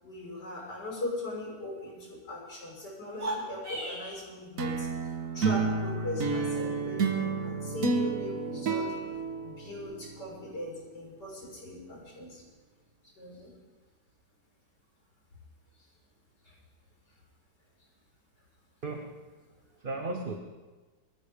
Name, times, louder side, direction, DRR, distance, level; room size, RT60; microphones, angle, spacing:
voice 1, 0.0-4.9 5.3-8.9 9.4-12.4 13.2-13.5 16.4-16.5, left 2 dB, 70° left, -4 dB, 6.1 m, -39 dB
sound 1, 3.1-4.2, right 1 dB, 75° right, 4.9 m, -36 dB
sound 2, 4.6-10.2, right 4 dB, 55° right, 1.5 m, -30 dB
voice 2, 18.8-19.3 19.7-20.3, right 3 dB, 35° right, 2 dB, 1.2 m, -36 dB
22.5 x 14.0 x 3.7 m, 1.3 s
omnidirectional pair, 1.9 m